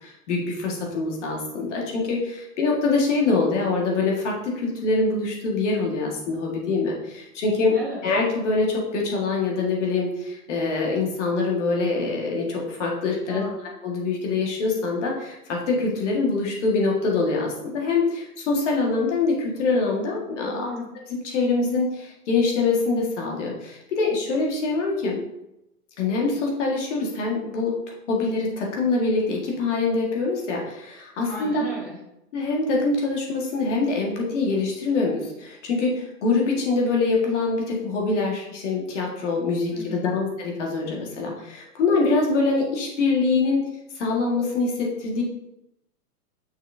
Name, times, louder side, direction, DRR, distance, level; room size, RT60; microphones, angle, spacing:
voice 1, 0.0-7.7 8.0-13.4 13.8-20.7 21.1-25.2 26.0-27.8 28.1-31.6 32.3-43.6 44.0-45.2, left 3 dB, 50° left, -1 dB, 1.7 m, -24 dB
voice 2, 20.4-20.9 31.3-32.0 39.7-40.0, left 1 dB, 5° right, -17 dB, 0.4 m, -35 dB
6.3 x 5.6 x 2.7 m, 0.87 s
hypercardioid pair, 155°, 47 cm